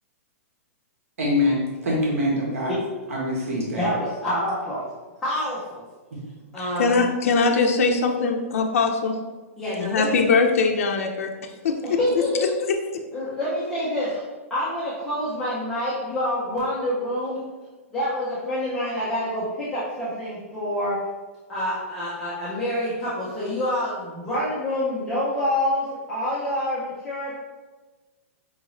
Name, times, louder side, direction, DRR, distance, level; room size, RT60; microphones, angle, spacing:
voice 1, 1.2-2.7 3.1-3.9 6.1-6.2 7.9-8.0, left 1 dB, 75° right, -4 dB, 1.1 m, -24 dB
voice 2, 3.8-4.8 5.2-5.8 6.5-6.9 9.6-10.2 11.8-12.5 13.1-14.2 14.5-17.4 17.9-21.0 21.5-27.3, left 1 dB, 5° left, -10 dB, 0.4 m, -27 dB
voice 3, 6.6-9.2 9.8-12.0 12.7-12.8, left 4 dB, 70° left, 3 dB, 0.4 m, -22 dB
4.8 x 2.5 x 3.0 m, 1.3 s
hypercardioid pair, 180°, 8 cm